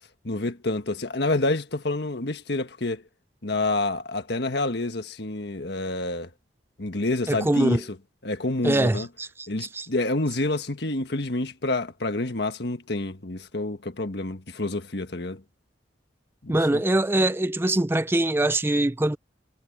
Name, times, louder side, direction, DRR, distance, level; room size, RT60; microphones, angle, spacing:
voice 1, 0.2-3.0 3.4-6.3 6.8-8.0 8.2-9.1 9.5-15.4 16.4-16.8, left 2 dB, 60° left, 1.6 m, -28 dB
voice 2, 7.3-7.8 8.6-9.9 16.5-19.2, right 1 dB, 15° right, 0.5 m, -23 dB
head